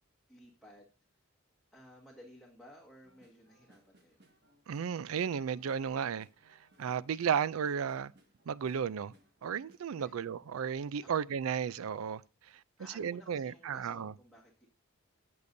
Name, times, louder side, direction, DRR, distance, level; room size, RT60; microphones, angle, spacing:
voice 1, 0.3-0.9 1.7-4.2 10.0-10.2 11.0-11.2 12.8-14.7, equal, ahead, 1.6 m, -57 dB
sound 1, 3.0-9.8, right 1 dB, 50° right, 1.6 m, -66 dB
voice 2, 4.7-8.1 8.5-9.1 9.4-12.6 13.0-14.1, right 7 dB, 90° right, 0.4 m, -34 dB
16.5 x 6.8 x 2.6 m
head